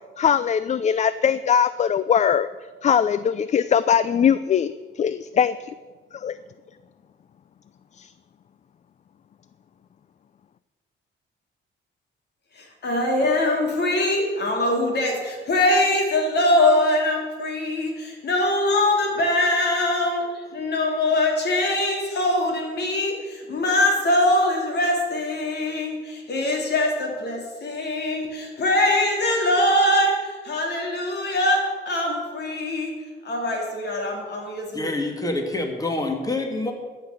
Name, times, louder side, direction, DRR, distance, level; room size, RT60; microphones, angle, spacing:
voice 1, 0.2-2.5 2.8-5.7 6.1-6.4 8.0-8.1, left 8 dB, 35° left, 15 dB, 0.4 m, -21 dB
voice 2, 12.6-33.0 33.2-34.9, left 1 dB, 55° left, 1 dB, 3.3 m, -22 dB
voice 3, 34.7-36.7, left 2 dB, 20° left, 3 dB, 2.0 m, -26 dB
14.0 x 5.9 x 8.1 m, 1.4 s
cardioid pair, 90°, 20 cm